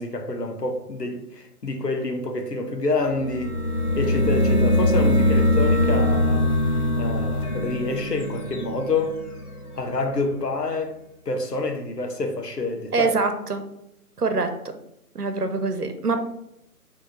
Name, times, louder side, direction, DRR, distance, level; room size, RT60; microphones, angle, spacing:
voice 1, 0.0-3.6 3.9-6.5 7.0-9.2 9.7-11.0 11.2-13.1, left 3 dB, 90° left, 1.2 m, -27 dB
sound 1, 2.0-10.5, right 10 dB, 5° left, 1.7 m, -44 dB
sound 2, 3.1-9.8, left 1 dB, 65° left, 1.6 m, -22 dB
voice 2, 12.9-13.6 14.2-14.5 15.1-16.2, right 4 dB, 75° right, 1.1 m, -24 dB
5.3 x 3.6 x 5.6 m
figure-of-eight pair, 145°, 47 cm